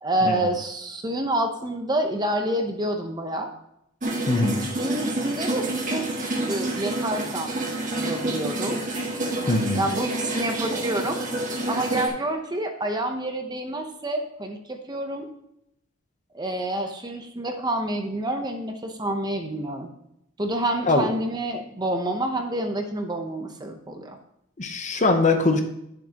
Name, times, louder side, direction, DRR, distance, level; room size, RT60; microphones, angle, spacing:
voice 1, 0.0-3.5 4.6-7.6 8.0-8.8 9.8-11.2 11.7-15.3 16.3-19.9 20.4-24.2, right 1 dB, 20° right, 5 dB, 0.8 m, -28 dB
sound 1, 4.0-12.1, right 2 dB, 35° right, 1.4 m, -28 dB
voice 2, 4.3-4.7 9.5-9.8 20.9-21.1 24.6-25.6, left 2 dB, 35° left, 6 dB, 0.8 m, -22 dB
9.8 x 7.5 x 2.9 m, 0.77 s
head